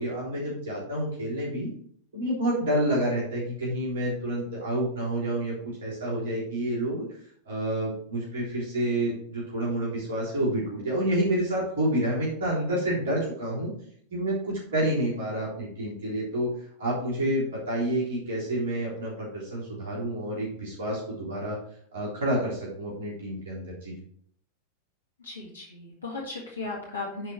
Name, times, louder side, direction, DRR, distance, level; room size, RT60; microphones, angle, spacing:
voice 1, 0.0-1.7 2.1-5.5 5.8-7.1 7.5-13.7 14.1-16.5 16.8-21.6 21.9-23.9, right 1 dB, 55° right, -6 dB, 3.6 m, -29 dB
voice 2, 25.2-27.3, left 3 dB, 75° left, -2 dB, 1.7 m, -36 dB
10.0 x 4.6 x 4.6 m, 0.64 s
figure-of-eight pair, 90°, 0 cm